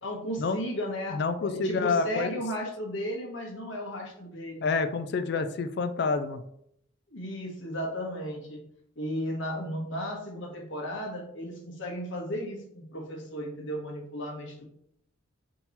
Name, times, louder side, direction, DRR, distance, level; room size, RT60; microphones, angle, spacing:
voice 1, 0.0-4.7 5.3-5.4 7.1-8.6 9.0-14.7, equal, 70° left, -1 dB, 1.2 m, -35 dB
voice 2, 1.1-2.4 4.6-6.4, left 4 dB, 55° left, 9 dB, 0.3 m, -28 dB
3.7 x 2.9 x 4.1 m, 0.71 s
head